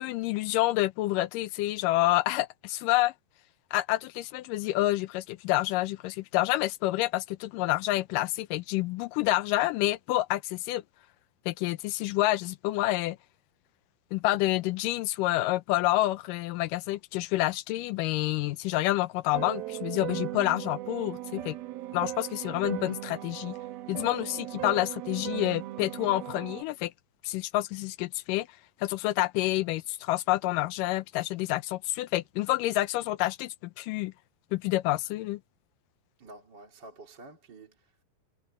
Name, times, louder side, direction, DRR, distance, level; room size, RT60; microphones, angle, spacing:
voice 1, 0.0-3.1 3.7-10.8 11.5-13.2 14.1-21.6 21.9-23.6 23.9-26.9 27.2-28.5 28.8-34.1 34.5-35.4, left 17 dB, 75° left, 2.1 m, -28 dB
sound 1, 19.3-26.6, right 15 dB, 85° right, 3.2 m, -37 dB
voice 2, 36.2-38.0, right 2 dB, 30° right, 3.5 m, -50 dB
omnidirectional pair, 4.2 m